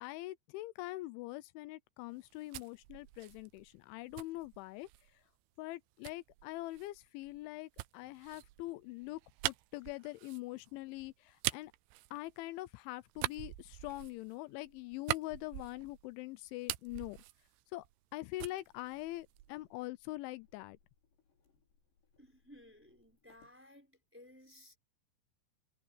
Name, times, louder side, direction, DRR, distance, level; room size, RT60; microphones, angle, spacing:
voice 1, 0.0-5.2 5.6-11.7 12.1-17.2 17.7-17.9 18.1-20.8, left 18 dB, 85° left, 3.0 m, -44 dB
sound 1, 2.1-5.1 6.0-12.7 13.1-16.1 16.4-18.1 18.4-19.7, right 18 dB, 85° right, 2.9 m, -43 dB
sound 2, 18.3-23.6, left 5 dB, 65° left, 7.6 m, -73 dB
voice 2, 22.2-24.8, left 1 dB, 5° right, 4.0 m, -58 dB
omnidirectional pair, 5.4 m